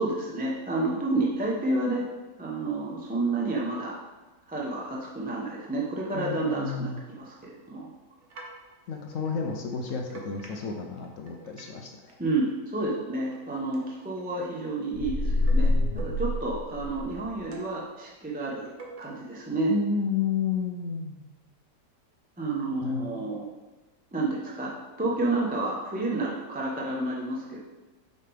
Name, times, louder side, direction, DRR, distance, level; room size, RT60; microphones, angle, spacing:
voice 1, 0.0-2.0 2.4-4.0 4.5-6.9 7.2-7.9 12.2-19.7 22.4-23.5 24.1-24.7 25.0-27.6, right 2 dB, 10° right, -3 dB, 0.4 m, -30 dB
voice 2, 6.1-7.0 8.9-12.2 19.7-21.2 22.8-23.3, left 5 dB, 65° left, 2 dB, 0.8 m, -31 dB
sound 1, 8.2-11.8 12.1-16.6 16.9-17.9 18.3-19.1, right 3 dB, 50° right, 1.1 m, -49 dB
sound 2, 14.9-17.3, left 2 dB, 35° left, 0.9 m, -26 dB
6.5 x 5.2 x 3.4 m, 1.2 s
omnidirectional pair, 1.9 m